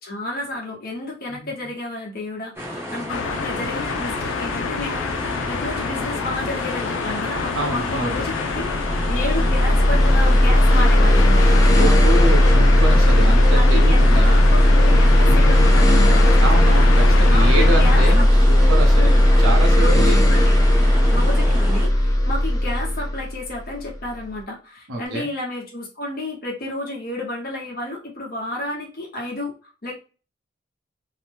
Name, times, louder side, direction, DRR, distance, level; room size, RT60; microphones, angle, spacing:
voice 1, 0.0-11.9 13.5-16.8 17.3-18.2 18.9-19.2 19.8-20.5 21.1-29.9, left 1 dB, 50° left, -2 dB, 0.9 m, -31 dB
sound 1, 2.5-21.9, equal, 10° right, 0.7 m, -32 dB
sound 2, 3.1-18.2, left 5 dB, 85° left, 0.4 m, -27 dB
voice 2, 7.5-8.2 11.7-14.5 16.4-19.1 19.4-20.2 21.0-21.5 24.9-25.3, right 2 dB, 90° right, 1 dB, 0.9 m, -27 dB
sound 3, 8.6-24.1, left 1 dB, 20° left, 0.5 m, -15 dB
2.7 x 2.1 x 3.3 m, 0.34 s
head